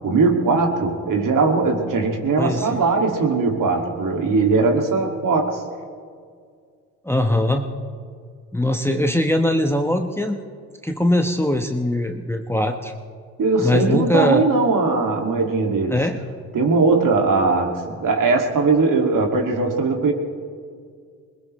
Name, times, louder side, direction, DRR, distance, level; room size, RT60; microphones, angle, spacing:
voice 1, 0.0-5.6 13.4-16.0 16.5-20.1, right 3 dB, 55° right, 2 dB, 2.4 m, -19 dB
voice 2, 2.4-2.8 7.0-7.7 8.5-10.4 10.8-12.9 13.6-14.4 15.9-16.2, left 1 dB, 5° left, 4 dB, 1.1 m, -21 dB
21.0 x 20.0 x 3.2 m, 2.1 s
supercardioid pair, 60°, 39 cm